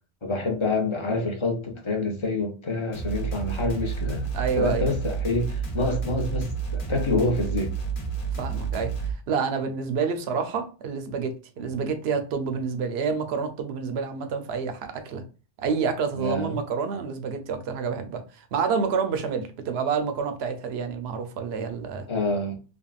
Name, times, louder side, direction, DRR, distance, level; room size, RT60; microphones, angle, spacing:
voice 1, 0.2-4.3 4.5-7.7 11.6-11.7 16.1-16.6 22.1-22.5, left 2 dB, 35° left, 0.6 m, -27 dB
sound 1, 2.9-9.1, right 6 dB, 50° left, 0.9 m, -30 dB
voice 2, 4.3-4.9 8.4-8.9 9.3-15.2 15.6-22.1, right 5 dB, 70° right, 0.8 m, -28 dB
3.5 x 2.2 x 2.3 m
omnidirectional pair, 1.2 m